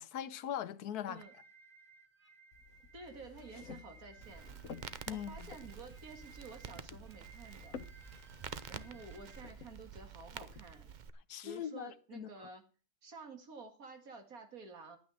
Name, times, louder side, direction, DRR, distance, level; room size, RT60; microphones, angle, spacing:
voice 1, 0.0-1.2 5.1-5.5 11.3-12.3, left 10 dB, 90° left, 1.3 m, -41 dB
sound 1, 1.2-9.5, right 4 dB, 25° right, 1.3 m, -60 dB
sound 2, 2.5-10.6, left 6 dB, 65° left, 1.2 m, -54 dB
voice 2, 2.9-4.5 5.1-7.8 8.7-10.9 11.4-12.6 13.0-15.0, right 4 dB, 70° right, 2.6 m, -51 dB
Crackle, 4.2-11.1, right 7 dB, 50° right, 0.6 m, -49 dB
10.5 x 9.5 x 6.4 m
omnidirectional pair, 1.6 m